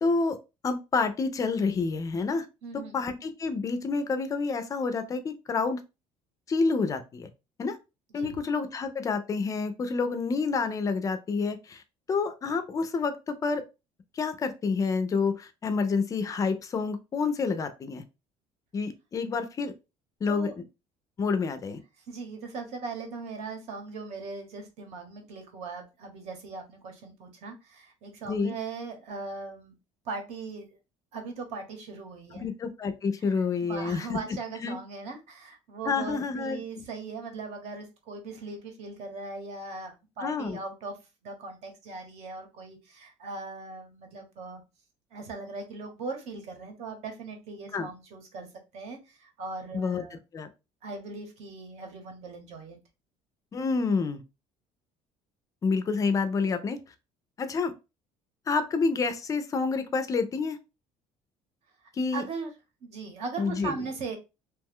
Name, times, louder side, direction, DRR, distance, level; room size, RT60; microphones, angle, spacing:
voice 1, 0.0-0.4 0.6-2.5 2.7-5.8 6.5-7.3 7.6-7.8 8.1-11.8 12.1-13.6 14.1-18.0 18.7-19.7 20.2-20.6 21.2-21.8 28.3-28.5 32.3-34.2 34.6-34.8 35.8-36.8 40.2-40.6 47.7-47.9 49.7-50.0 50.3-50.5 53.5-54.2 55.6-56.8 57.4-57.7 58.5-60.6 61.9-62.2 63.4-63.8, left 4 dB, 25° left, 9 dB, 0.4 m, -28 dB
voice 2, 2.6-3.0 8.1-8.4 20.3-20.5 22.1-29.8 30.0-30.7 31.1-32.5 33.2-33.3 33.6-40.9 41.2-44.6 45.1-48.5 48.7-50.2 50.8-52.8 62.1-62.5 62.8-64.2, right 4 dB, 60° right, 4 dB, 1.0 m, -39 dB
2.8 x 2.2 x 3.5 m, 0.27 s
cardioid pair, 155°, 13 cm